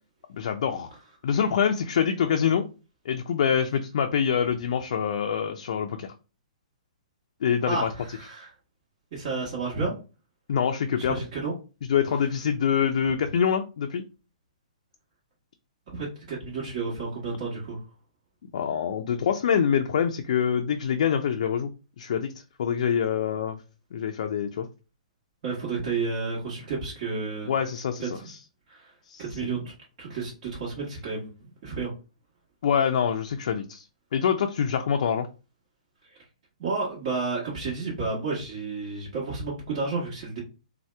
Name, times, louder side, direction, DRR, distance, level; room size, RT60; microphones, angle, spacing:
voice 1, 0.3-0.9 1.2-2.6 3.1-6.1 7.4-7.9 10.5-11.2 11.9-14.0 18.5-21.7 22.0-22.3 22.6-23.6 23.9-24.7 27.5-28.4 29.1-29.5 32.6-33.8 34.1-35.3, left 7 dB, 65° left, 5 dB, 0.3 m, -25 dB
voice 2, 7.7-8.5 9.1-9.9 10.9-11.5 15.9-17.8 25.4-27.5 28.0-28.1 28.7-28.9 29.2-29.7 30.0-31.9 36.6-40.4, right 4 dB, 45° right, -5 dB, 1.1 m, -31 dB
2.7 x 2.0 x 3.2 m, 0.32 s
hypercardioid pair, 140°, 4 cm